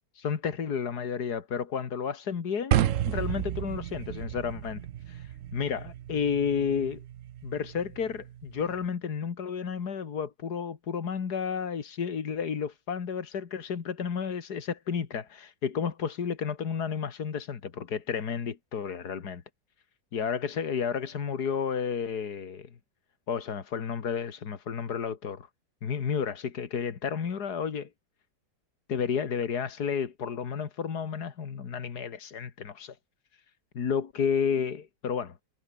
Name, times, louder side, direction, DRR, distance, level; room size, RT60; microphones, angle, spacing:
voice 1, 0.1-7.0 7.4-19.4 20.1-22.7 23.3-25.5 25.8-27.9 28.9-33.0 33.7-35.4, left 6 dB, 80° left, 2.3 m, -32 dB
sound 1, 2.7-8.8, right 11 dB, 60° right, 1.0 m, -33 dB
omnidirectional pair, 1.7 m